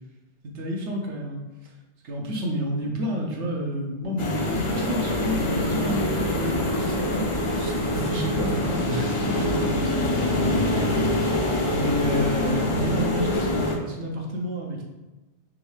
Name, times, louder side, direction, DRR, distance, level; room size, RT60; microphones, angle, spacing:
voice 1, 0.4-1.4 2.0-11.4 11.7-14.8, equal, 85° right, 0 dB, 1.1 m, -30 dB
sound 1, 4.2-13.8, left 1 dB, 45° left, 0.4 m, -25 dB
3.6 x 3.1 x 3.2 m, 1.1 s
omnidirectional pair, 1.2 m